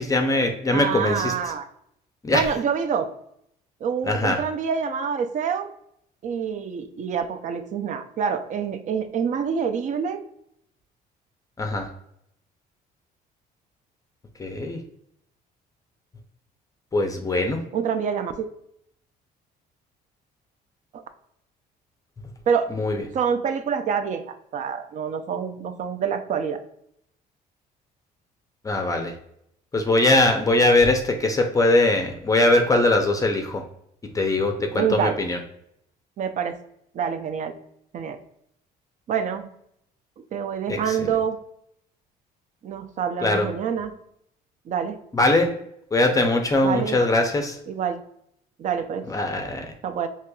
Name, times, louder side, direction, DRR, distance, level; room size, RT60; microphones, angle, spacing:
voice 1, 0.0-1.3 2.2-2.4 4.1-4.4 11.6-11.9 14.4-14.8 16.9-17.6 22.7-23.0 28.6-29.1 29.7-33.6 34.1-35.4 40.7-41.0 43.2-43.5 45.1-45.5 45.9-47.6 49.1-49.7, left 2 dB, 20° left, 4 dB, 0.5 m, -21 dB
voice 2, 0.7-1.7 2.3-3.1 3.8-5.7 6.2-10.2 17.7-18.5 20.9-21.0 22.5-22.7 23.1-26.6 34.7-35.2 36.2-36.6 36.9-37.5 37.9-38.2 39.1-39.4 40.3-41.4 42.6-43.9 44.7-45.0 46.6-47.0 47.7-48.0 48.6-49.0 49.8-50.1, right 7 dB, 45° right, 9 dB, 0.4 m, -26 dB
4.5 x 2.8 x 2.2 m, 0.73 s
cardioid pair, 110°, 17 cm